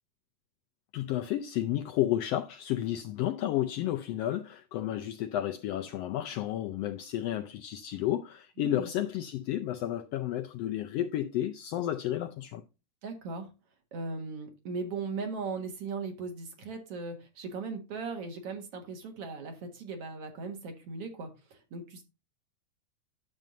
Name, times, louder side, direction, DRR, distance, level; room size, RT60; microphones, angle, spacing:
voice 1, 0.9-12.6, left 12 dB, 80° left, 1.4 m, -32 dB
voice 2, 8.6-8.9 13.0-13.5 13.9-22.0, right 4 dB, 55° right, 2.4 m, -38 dB
10.5 x 7.4 x 2.6 m
omnidirectional pair, 3.3 m